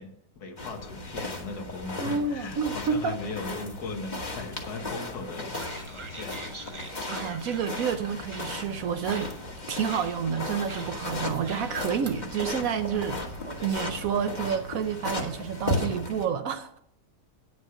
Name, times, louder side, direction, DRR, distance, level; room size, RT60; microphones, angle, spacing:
voice 1, 0.0-5.6 5.9-6.5, left 3 dB, 70° left, 1.8 m, -38 dB
sound 1, 0.6-16.3, left 2 dB, 30° left, 1.3 m, -36 dB
voice 2, 2.0-3.2 7.1-9.3 9.7-13.2 13.6-16.8, right 7 dB, 65° right, 0.9 m, -29 dB
sound 2, 5.5-14.1, right 3 dB, 25° right, 0.8 m, -45 dB
9.8 x 6.3 x 5.7 m
omnidirectional pair, 1.8 m